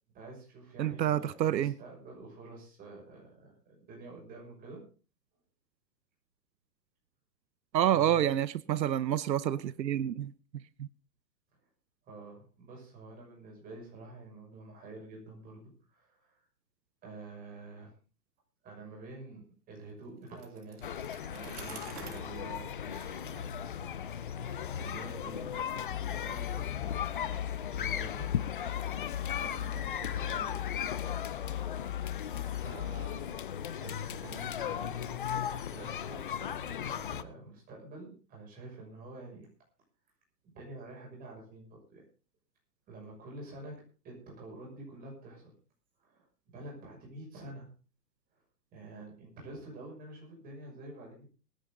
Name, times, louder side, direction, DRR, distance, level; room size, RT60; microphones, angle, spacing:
voice 1, 0.1-4.8 7.9-8.3 12.0-16.4 17.0-17.9 18.6-20.9 21.3-23.6 24.7-25.8 26.1-27.4 27.7-28.3 29.3-30.7 32.5-34.9 35.3-39.5 40.4-42.0 42.9-45.5 46.0-47.7 48.3-48.4 48.7-51.3, right 2 dB, 15° right, -1 dB, 6.2 m, -48 dB
voice 2, 0.8-1.8 7.7-10.3 10.8-10.9, right 11 dB, 90° right, 17 dB, 0.9 m, -28 dB
Bicycle, 20.3-24.1, right 7 dB, 65° right, 3.0 m, -51 dB
sound 1, 20.8-37.2, left 9 dB, 35° left, 0.6 m, -37 dB
sound 2, 25.9-33.3, left 11 dB, 85° left, 0.9 m, -38 dB
22.5 x 10.5 x 3.8 m, 0.37 s
hypercardioid pair, 165°, 50 cm